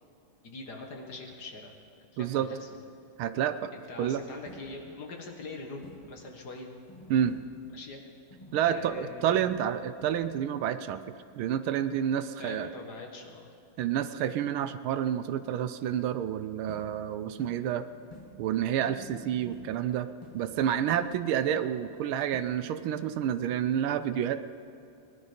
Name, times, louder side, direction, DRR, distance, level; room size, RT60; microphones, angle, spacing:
voice 1, 0.4-1.7 2.1-2.7 3.7-6.7 7.7-8.0 8.6-9.5 12.4-13.5, left 2 dB, 50° left, 2 dB, 1.9 m, -43 dB
voice 2, 2.2-2.5 3.2-3.7 4.0-4.2 7.1-7.4 8.5-11.0 11.4-12.7 13.8-17.8 18.4-20.1 20.3-24.5, right 10 dB, 80° right, 12 dB, 1.4 m, -29 dB
sound 1, 4.5-5.2 5.8-6.5 6.9-8.0 8.3-10.5 16.7-21.6 22.3-22.4, left 1 dB, 15° left, 1.6 m, -51 dB
19.0 x 11.5 x 5.1 m, 2.7 s
omnidirectional pair, 2.3 m